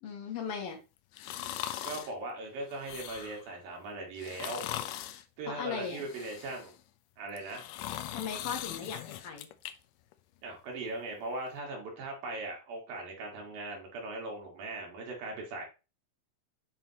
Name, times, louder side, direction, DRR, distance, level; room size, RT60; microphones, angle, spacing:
voice 1, 0.0-0.8 5.5-6.0 8.1-9.5, left 7 dB, 65° left, 2 dB, 1.5 m, -37 dB
sound 1, 1.1-2.1 2.7-3.5 4.2-5.2 5.8-6.8 7.3-9.7 10.1-10.2, left 12 dB, 80° left, 2.2 m, -40 dB
voice 2, 1.8-4.7 5.4-6.7 7.2-7.7 10.4-15.6, right 2 dB, 85° right, 0 dB, 3.6 m, -39 dB
7.5 x 5.2 x 2.9 m, 0.30 s
omnidirectional pair, 4.0 m